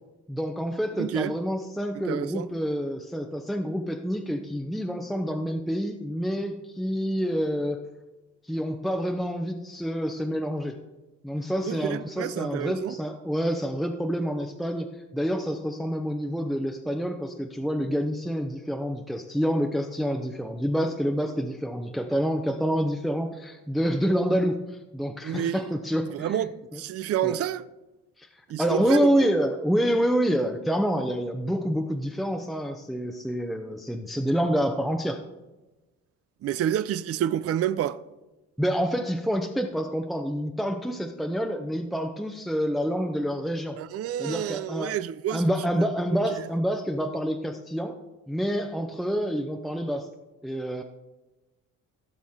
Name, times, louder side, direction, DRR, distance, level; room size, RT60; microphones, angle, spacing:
voice 1, 0.3-7.8 8.4-10.8 11.2-26.5 26.7-26.8 27.2-27.4 28.2-28.3 28.6-35.2 38.6-43.8 44.2-44.9 45.3-48.0 48.3-50.1 50.4-50.8, equal, ahead, 0.8 m, -27 dB
voice 2, 1.0-1.3 2.1-2.5 11.6-12.9 25.2-25.6 26.1-27.6 28.5-29.3 36.4-38.0 43.8-45.9, right 11 dB, 50° right, 0.5 m, -29 dB
16.0 x 6.1 x 3.7 m
cardioid pair, 90°, 30 cm